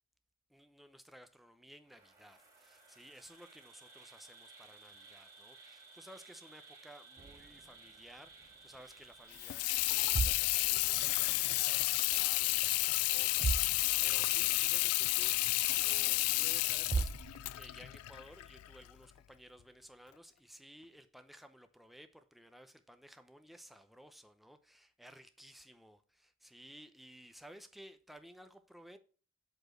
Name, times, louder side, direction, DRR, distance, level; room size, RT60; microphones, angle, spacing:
voice 1, 0.5-29.0, equal, ahead, 0.7 m, -56 dB
Insect, 1.8-12.6, right 3 dB, 15° right, 2.6 m, -58 dB
sound 1, 7.2-8.8 9.1-9.4 9.9-11.8 12.0-12.7 13.0-13.1 13.3-14.4 14.7-14.8 15.4-15.5 16.5-16.6 16.9-17.9, right 4 dB, 40° right, 0.4 m, -39 dB
Water tap faucet / Sink (filling or washing), 9.3-18.9, left 19 dB, 75° left, 0.3 m, -31 dB
8.1 x 4.5 x 6.0 m
head